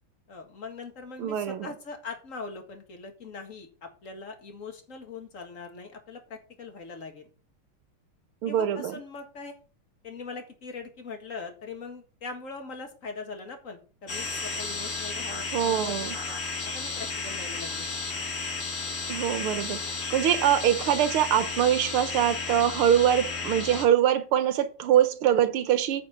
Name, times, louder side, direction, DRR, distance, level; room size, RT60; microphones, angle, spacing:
voice 1, 0.3-7.3 8.5-9.6 10.0-16.2 16.6-17.9, left 4 dB, 40° left, 2.0 m, -41 dB
voice 2, 1.2-1.7 8.4-9.0 15.5-16.2 19.1-26.0, right 10 dB, 90° right, 1.9 m, -24 dB
sound 1, 14.1-23.9, left 4 dB, 85° left, 2.8 m, -33 dB
9.2 x 5.3 x 7.0 m
omnidirectional pair, 2.4 m